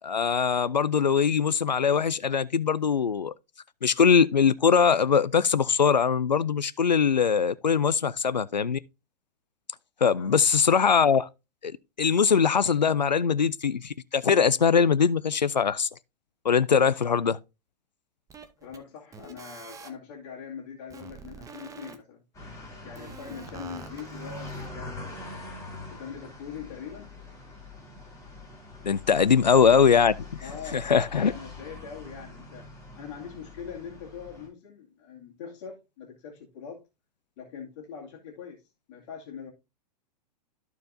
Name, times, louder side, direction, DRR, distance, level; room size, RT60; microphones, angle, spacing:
voice 1, 0.0-3.3 3.8-8.8 10.0-11.3 11.6-11.7 12.0-15.9 16.4-17.4 28.8-30.1 30.7-31.3, left 6 dB, 90° left, 0.4 m, -22 dB
sound 1, 18.3-18.8 19.1-19.9 20.9-21.9 22.9-24.7, right 5 dB, 15° right, 0.9 m, -45 dB
voice 2, 18.6-22.2 22.8-25.4 25.9-27.1 29.2-29.3 30.4-36.8 37.4-39.5, left 7 dB, 45° left, 2.3 m, -42 dB
sound 2, 22.3-34.5, left 2 dB, 15° left, 3.8 m, -43 dB
13.5 x 4.6 x 2.6 m
figure-of-eight pair, 100°, 21 cm